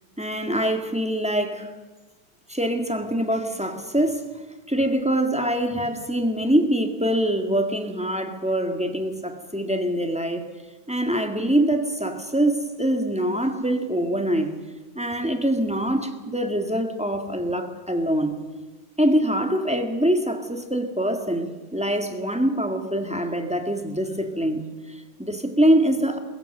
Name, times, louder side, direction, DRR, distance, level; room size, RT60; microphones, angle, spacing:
voice 1, 0.2-1.7 2.5-10.4 10.9-14.5 14.9-18.4 19.0-26.2, right 1 dB, 5° right, 5 dB, 0.7 m, -24 dB
22.5 x 21.5 x 6.7 m, 1.3 s
omnidirectional pair, 3.5 m